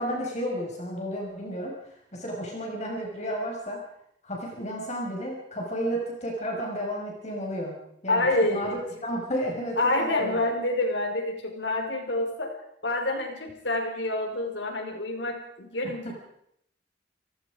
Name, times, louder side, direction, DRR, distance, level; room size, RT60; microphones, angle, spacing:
voice 1, 0.0-1.7 2.1-3.8 4.2-7.8 8.0-10.4, equal, 40° left, -1 dB, 6.0 m, -32 dB
voice 2, 8.1-8.8 9.8-12.5 12.8-16.1, left 2 dB, 85° left, 4 dB, 5.0 m, -27 dB
29.5 x 19.0 x 5.1 m, 0.74 s
head